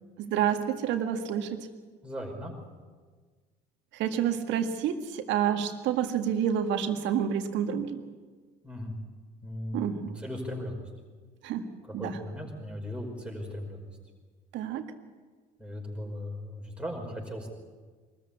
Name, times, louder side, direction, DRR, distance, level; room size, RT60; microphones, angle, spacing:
voice 1, 0.2-1.7 4.0-8.0 9.7-10.1 11.4-11.6 11.9-12.2 14.5-14.8 16.0-16.1, right 9 dB, 65° right, 6 dB, 1.9 m, -29 dB
voice 2, 2.0-2.5 8.6-9.0 9.4-10.8 12.0-13.8 15.6-17.5, left 1 dB, 5° right, 0 dB, 5.3 m, -37 dB
23.5 x 14.0 x 8.5 m, 1.5 s
hypercardioid pair, 75°, 20 cm